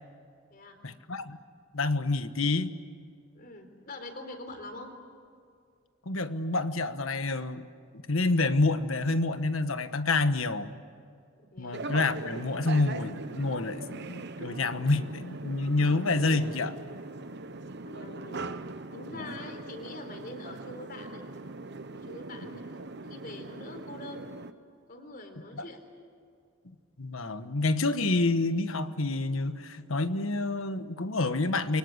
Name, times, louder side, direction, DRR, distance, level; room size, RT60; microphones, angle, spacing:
voice 1, 0.8-1.4 1.7-2.7 6.0-7.7 8.1-10.7 11.6-16.8 19.1-19.3 25.5-25.6 27.0-31.8, left 3 dB, 85° left, 10 dB, 1.4 m, -28 dB
voice 2, 3.3-4.9 11.4-11.9 17.7-18.5 18.9-21.2 21.9-24.3 24.9-25.8, left 2 dB, 45° left, 6 dB, 4.0 m, -44 dB
sound 1, 11.7-24.5, right 2 dB, 55° right, 1.0 m, -41 dB
29.0 x 24.5 x 8.1 m, 2.3 s
head